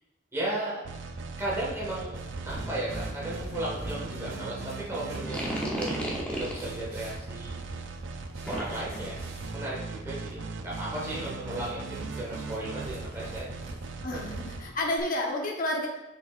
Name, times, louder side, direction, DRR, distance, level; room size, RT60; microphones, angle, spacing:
voice 1, 0.3-0.8 1.4-2.2 2.5-7.5 8.5-9.2 9.5-13.5 14.1-14.2, right 1 dB, 15° right, -7 dB, 1.7 m, -35 dB
sound 1, 0.8-15.0, right 3 dB, 70° right, 0.5 m, -38 dB
sound 2, 2.1-13.9, right 1 dB, 55° right, 1.6 m, -45 dB
sound 3, 5.2-6.7 8.5-9.0, equal, 5° left, 0.9 m, -33 dB
voice 2, 14.0-15.9, left 1 dB, 45° left, -1 dB, 1.0 m, -30 dB
7.0 x 5.8 x 2.5 m, 1.0 s
head